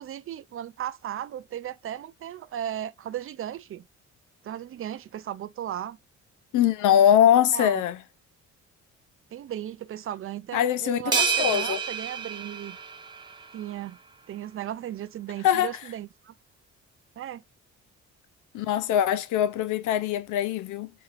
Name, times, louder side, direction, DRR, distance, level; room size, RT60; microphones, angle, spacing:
voice 1, 0.0-3.8 4.4-6.0 7.5-7.8 9.3-12.8 13.5-14.0 14.3-16.3 17.2-17.4, right 11 dB, 45° right, 0.4 m, -36 dB
voice 2, 6.5-8.0 10.5-11.8 15.4-15.7 18.5-20.9, left 10 dB, 80° left, 0.5 m, -22 dB
sound 1, 11.1-13.6, right 5 dB, 15° right, 0.7 m, -29 dB
3.0 x 2.8 x 2.4 m
cardioid pair, 90°, 30 cm